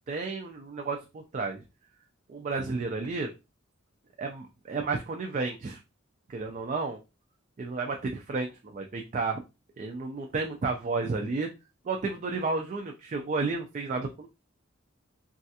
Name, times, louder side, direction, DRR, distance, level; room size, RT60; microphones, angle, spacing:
voice 1, 0.0-1.6 2.3-3.3 4.2-5.8 6.3-7.0 7.6-9.4 9.8-11.5 11.9-14.3, right 3 dB, 35° right, 3 dB, 0.3 m, -32 dB
3.2 x 2.3 x 2.7 m, 0.26 s
head